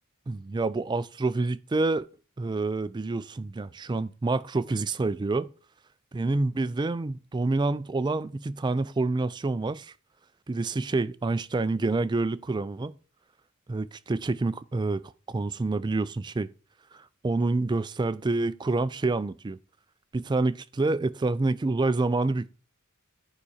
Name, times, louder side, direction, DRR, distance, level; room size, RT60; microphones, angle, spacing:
voice 1, 0.3-2.1 2.4-5.5 6.1-9.9 10.5-12.9 13.7-15.0 15.3-16.5 16.9-19.6 20.1-22.5, right 3 dB, 20° right, 0.3 m, -27 dB
9.8 x 4.9 x 4.2 m
head